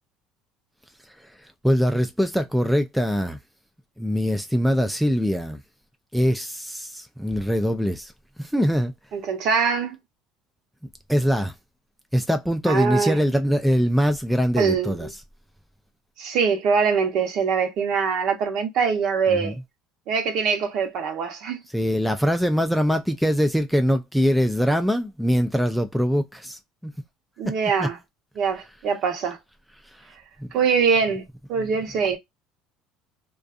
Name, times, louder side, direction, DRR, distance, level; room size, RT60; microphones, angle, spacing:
voice 1, 1.6-3.4 4.0-5.6 6.1-8.1 8.4-8.9 11.1-11.5 12.1-15.1 19.3-19.6 21.7-26.9 27.8-27.9, equal, ahead, 0.3 m, -22 dB
voice 2, 9.1-10.0 12.7-13.2 14.6-15.1 16.2-19.6 20.1-21.6 27.4-28.0 28.4-29.4 30.5-31.2 31.5-32.2, right 6 dB, 55° right, 0.9 m, -23 dB
2.5 x 2.3 x 2.4 m
cardioid pair, 140°, 0 cm